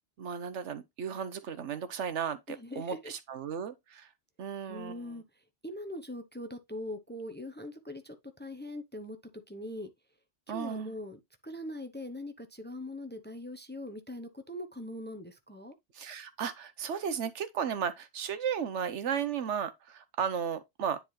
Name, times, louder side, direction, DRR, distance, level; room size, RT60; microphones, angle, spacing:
voice 1, 0.2-4.1 4.4-5.2 10.5-10.9 15.9-21.0, right 7 dB, 80° right, 1.2 m, -35 dB
voice 2, 2.5-3.1 4.7-5.2 5.6-9.2 9.5-9.9 10.5-15.7, left 1 dB, 10° left, 0.7 m, -41 dB
10.0 x 4.0 x 3.2 m
omnidirectional pair, 1.2 m